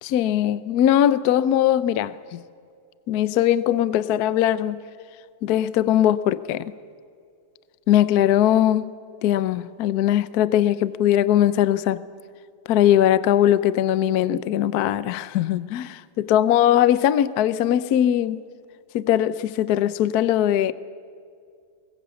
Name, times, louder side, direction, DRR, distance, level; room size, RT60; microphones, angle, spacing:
voice 1, 0.0-2.4 3.1-4.8 5.4-6.7 7.9-8.9 9.2-12.0 12.7-18.4 18.9-20.7, left 11 dB, 65° left, 0.9 m, -20 dB
24.0 x 21.0 x 7.1 m
omnidirectional pair, 2.4 m